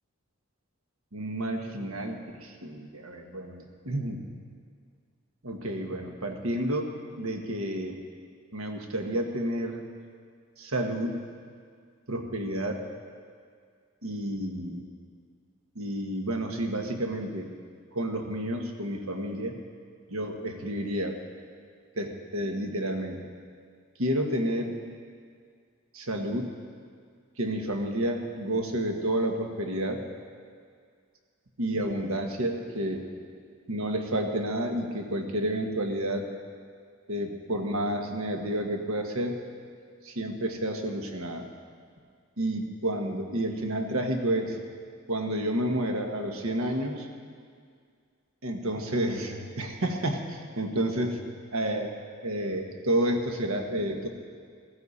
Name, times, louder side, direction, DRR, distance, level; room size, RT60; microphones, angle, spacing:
voice 1, 1.1-4.2 5.4-8.0 8.5-9.8 10.6-11.1 12.1-12.8 14.0-14.8 15.7-17.5 17.9-19.5 20.1-21.2 22.0-23.2 24.0-24.7 25.9-26.5 27.4-30.0 31.6-33.0 33.7-36.3 37.1-39.4 40.0-41.5 42.4-44.6 45.1-47.1 48.4-51.2 51.5-52.0 52.2-54.1, right 1 dB, 80° right, 3 dB, 1.5 m, -30 dB
15.5 x 14.0 x 4.2 m, 2.1 s
head